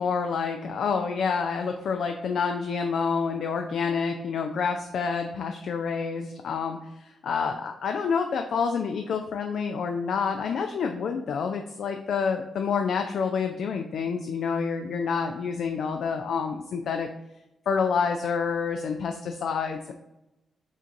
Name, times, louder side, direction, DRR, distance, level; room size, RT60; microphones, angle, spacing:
voice 1, 0.0-17.1 17.7-19.9, left 5 dB, 70° left, 5 dB, 0.3 m, -28 dB
4.9 x 3.9 x 2.5 m, 0.92 s
hypercardioid pair, 40°, 0 cm